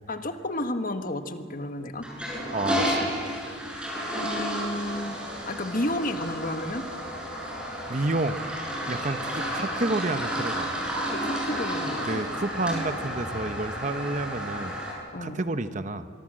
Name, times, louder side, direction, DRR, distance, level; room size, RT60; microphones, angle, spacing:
voice 1, 0.1-2.1 4.2-5.2 5.4-6.9 11.1-12.2 15.1-15.4, left 1 dB, 45° left, 7 dB, 1.5 m, -31 dB
Toilet flush, 2.0-14.9, equal, 5° right, 7.6 m, -32 dB
voice 2, 2.5-3.1 7.9-8.4 8.9-10.7 12.0-14.8 15.2-16.1, right 2 dB, 40° right, 10 dB, 1.0 m, -30 dB
25.0 x 23.5 x 7.7 m, 2.2 s
head